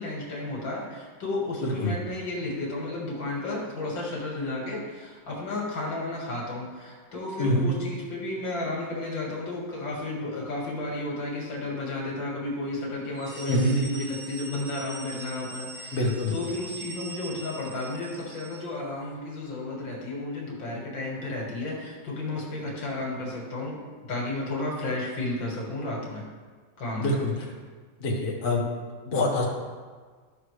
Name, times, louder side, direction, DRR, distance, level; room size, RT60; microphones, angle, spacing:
voice 1, 0.0-23.8 24.1-26.2 26.8-27.3, left 2 dB, 70° left, -2 dB, 2.4 m, -33 dB
sound 1, 13.1-18.8, right 2 dB, 35° right, 1.1 m, -42 dB
voice 2, 13.5-13.8 15.9-16.3 27.0-27.3 28.0-28.6 29.1-29.4, left 1 dB, 30° left, -3 dB, 1.4 m, -25 dB
12.5 x 5.8 x 3.2 m, 1.5 s
omnidirectional pair, 2.1 m